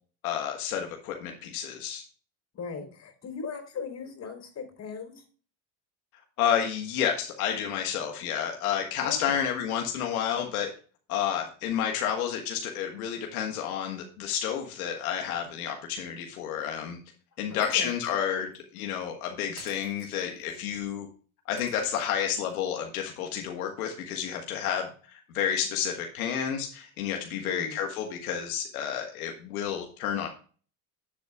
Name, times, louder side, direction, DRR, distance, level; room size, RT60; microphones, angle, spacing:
voice 1, 0.2-2.0 6.4-10.7 11.1-17.0 17.4-21.1 21.4-30.3, left 9 dB, 90° left, 2 dB, 1.6 m, -30 dB
voice 2, 2.5-5.2 9.0-9.4 17.5-17.9 27.4-27.8, left 5 dB, 40° left, 4 dB, 4.3 m, -38 dB
Shatter, 17.6-18.3 18.5-18.6 19.6-20.6 21.6-22.5, right 5 dB, 90° right, 3.2 m, -52 dB
11.0 x 7.6 x 2.4 m, 0.39 s
supercardioid pair, 90°, 42 cm